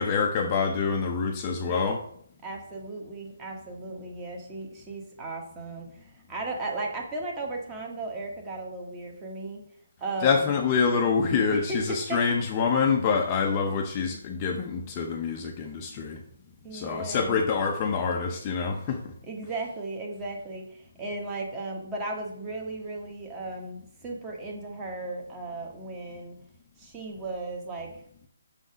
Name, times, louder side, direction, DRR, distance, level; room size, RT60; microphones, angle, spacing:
voice 1, 0.0-2.0 10.2-16.2 16.7-19.1, left 5 dB, 25° left, 3 dB, 0.6 m, -26 dB
voice 2, 2.4-9.6 10.0-10.5 11.5-12.2 16.6-17.4 19.2-26.4 26.8-27.9, right 2 dB, 15° right, 0 dB, 1.3 m, -36 dB
6.5 x 3.9 x 5.0 m, 0.65 s
hypercardioid pair, 160°, 0 cm